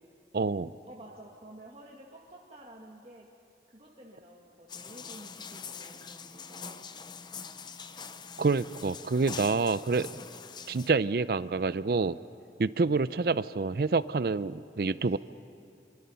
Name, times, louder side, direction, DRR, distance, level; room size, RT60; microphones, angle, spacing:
voice 1, 0.3-0.7 8.4-10.2 10.7-12.2 12.6-15.2, right 4 dB, 55° right, 16 dB, 0.5 m, -27 dB
voice 2, 0.8-3.3 3.7-6.9 15.0-15.2, right 1 dB, 35° right, -2 dB, 1.8 m, -51 dB
sound 1, 4.7-10.9, left 6 dB, 25° left, 0.6 m, -44 dB
26.5 x 23.5 x 5.7 m, 2.6 s
head